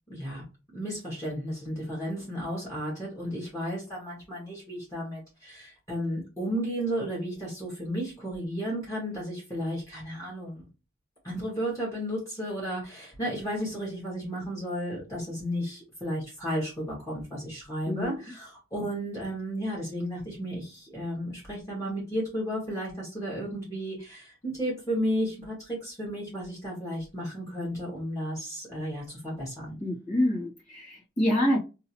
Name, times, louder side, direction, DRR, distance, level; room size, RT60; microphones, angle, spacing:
voice 1, 0.1-0.4 0.7-10.7 11.2-29.8, equal, 20° left, 2.1 m, -33 dB
voice 2, 17.9-18.2 29.8-31.6, left 1 dB, 40° left, 1.8 m, -27 dB
3.7 x 3.0 x 2.9 m
head